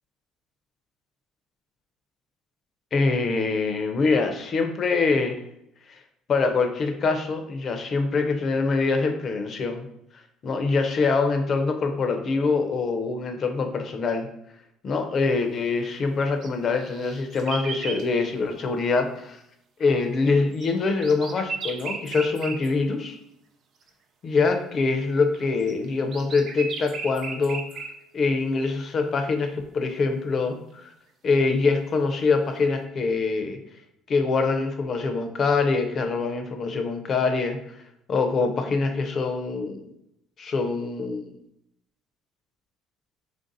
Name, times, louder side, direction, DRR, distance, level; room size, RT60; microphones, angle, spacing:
voice 1, 2.9-5.4 6.3-9.9 10.4-14.3 14.8-19.4 19.8-23.2 24.2-27.6 28.1-30.9 31.2-33.6 34.1-37.6 38.1-39.9 40.4-41.3, left 4 dB, 40° left, 5 dB, 0.5 m, -24 dB
sound 1, 16.2-18.1 20.2-22.7 23.9-24.0 25.3-27.9, right 4 dB, 50° right, 0.5 m, -36 dB
3.4 x 2.6 x 3.9 m, 0.78 s
cardioid pair, 130°, 0 cm